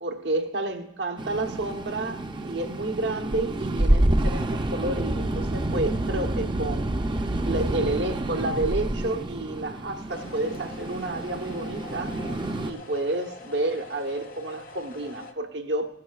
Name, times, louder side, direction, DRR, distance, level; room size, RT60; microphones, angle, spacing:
voice 1, 0.0-6.9 7.2-12.2 12.6-15.9, right 2 dB, 80° right, 6 dB, 1.0 m, -30 dB
sound 1, 1.2-12.7, right 1 dB, 25° right, 0.5 m, -28 dB
sound 2, 10.1-15.3, left 3 dB, 50° left, 0.9 m, -44 dB
17.0 x 13.0 x 2.4 m, 0.78 s
head